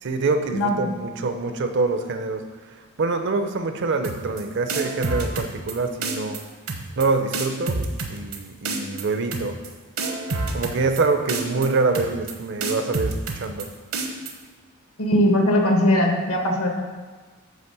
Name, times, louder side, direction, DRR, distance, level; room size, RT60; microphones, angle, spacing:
voice 1, 0.0-6.5 6.9-9.6 10.5-13.7, right 3 dB, 55° right, 0.6 m, -25 dB
voice 2, 0.5-0.9 15.0-16.7, left 1 dB, 70° left, 1.2 m, -20 dB
sound 1, 4.0-4.4 4.7-5.7 6.0-6.4 6.7-7.1 7.3-8.4 8.6-9.0 9.3-9.7 10.0-11.0 11.3-11.7 11.9-12.3 12.6-13.6 13.9-14.3, right 3 dB, 70° right, 1.0 m, -27 dB
9.1 x 3.3 x 6.7 m
head